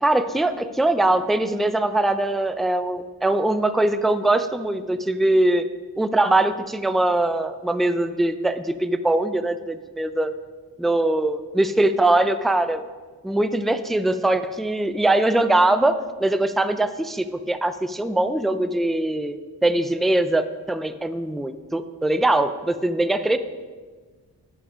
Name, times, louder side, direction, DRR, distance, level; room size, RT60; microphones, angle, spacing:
voice 1, 0.0-5.7 6.0-10.3 10.8-12.8 13.2-23.4, right 2 dB, ahead, 11 dB, 0.4 m, -22 dB
9.9 x 5.6 x 5.5 m, 1.4 s
wide cardioid pair, 85°, 39 cm